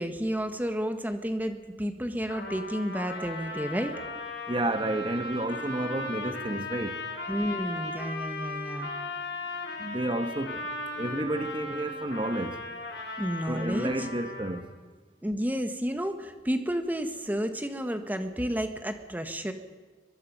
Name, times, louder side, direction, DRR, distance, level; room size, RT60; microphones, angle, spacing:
voice 1, 0.0-4.0 7.3-8.9 13.2-14.1 15.2-19.5, equal, 10° right, 1.6 m, -31 dB
Trumpet, 2.3-14.7, left 2 dB, 75° left, 4.5 m, -37 dB
voice 2, 4.5-7.0 9.8-10.7 10.9-12.6 13.5-14.7, right 1 dB, 30° right, 1.3 m, -31 dB
23.5 x 22.5 x 5.6 m
head